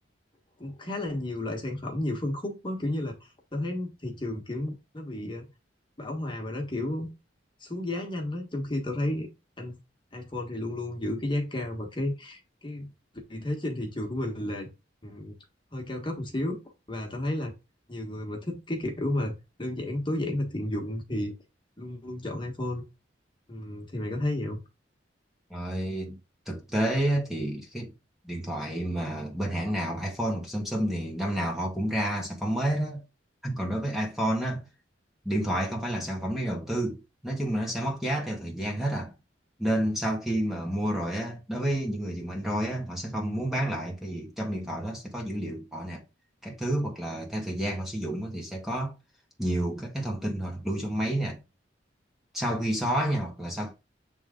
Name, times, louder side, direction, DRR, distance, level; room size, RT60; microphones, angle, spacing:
voice 1, 0.6-5.4 6.0-7.1 7.6-9.3 9.6-9.7 10.1-12.9 13.3-14.7 15.0-15.3 15.7-16.6 16.9-17.5 17.9-19.3 19.6-21.3 21.8-22.8 23.5-24.6, left 1 dB, 25° left, 1.5 m, -32 dB
voice 2, 25.5-26.2 26.5-27.9 28.2-33.0 33.4-34.7 35.2-39.1 39.6-46.0 46.4-48.9 49.4-51.4 52.3-53.7, right 1 dB, ahead, 1.3 m, -30 dB
8.0 x 3.6 x 3.8 m
head